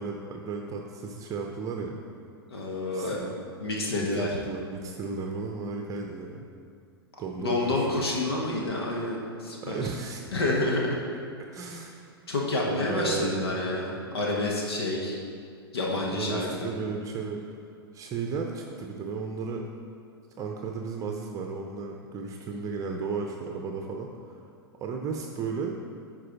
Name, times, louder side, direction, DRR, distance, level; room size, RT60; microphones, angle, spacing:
voice 1, 0.0-2.0 2.9-3.3 3.9-6.5 7.2-8.0 9.6-10.2 11.5-12.0 12.6-13.5 16.1-17.6 17.9-19.6 20.4-24.4 24.8-25.8, right 4 dB, 25° right, 2 dB, 0.7 m, -34 dB
voice 2, 2.5-3.2 3.6-4.3 7.4-9.8 10.3-11.0 11.7-11.8 12.3-15.2 15.7-16.7, left 2 dB, 75° left, -2 dB, 1.4 m, -28 dB
11.0 x 4.6 x 4.6 m, 2.3 s
figure-of-eight pair, 105°, 13 cm